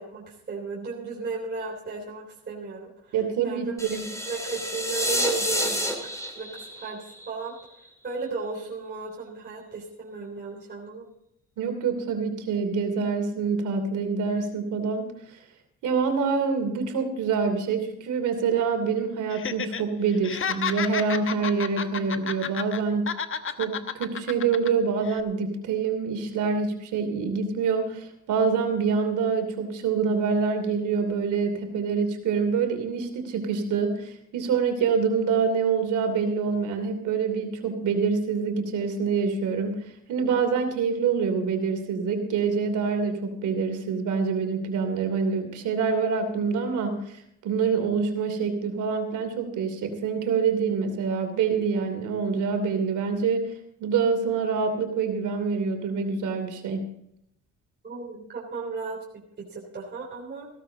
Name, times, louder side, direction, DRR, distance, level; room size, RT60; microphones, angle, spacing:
voice 1, 0.0-4.0 4.3-7.6 8.0-11.1 57.8-60.5, right 3 dB, 35° right, -3 dB, 3.4 m, -35 dB
voice 2, 3.1-4.0 11.6-15.4 15.8-23.1 23.6-39.8 40.1-53.4 53.8-56.8, right 5 dB, 80° right, 5 dB, 2.9 m, -26 dB
sound 1, 3.8-7.9, equal, 10° left, 3.0 m, -29 dB
Laughter, 19.3-19.8 20.1-22.8 23.1-24.7 25.1-25.2, left 7 dB, 45° left, 1.1 m, -31 dB
16.0 x 13.0 x 3.9 m, 0.74 s
cardioid pair, 90°, 30 cm